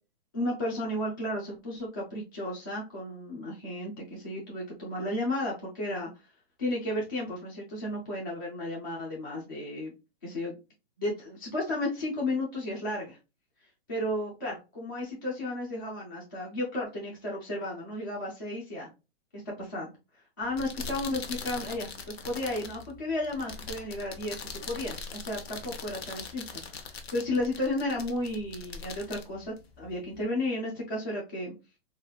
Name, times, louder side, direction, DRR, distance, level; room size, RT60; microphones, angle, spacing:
voice 1, 0.3-6.1 6.6-9.9 10.2-10.5 11.0-13.2 13.9-18.9 19.3-19.9 20.4-31.5, left 1 dB, 25° left, -4 dB, 0.4 m, -33 dB
sound 1, 20.4-30.2, left 5 dB, 75° left, 0.7 m, -42 dB
3.0 x 2.4 x 2.8 m, 0.28 s
hypercardioid pair, 175°, 31 cm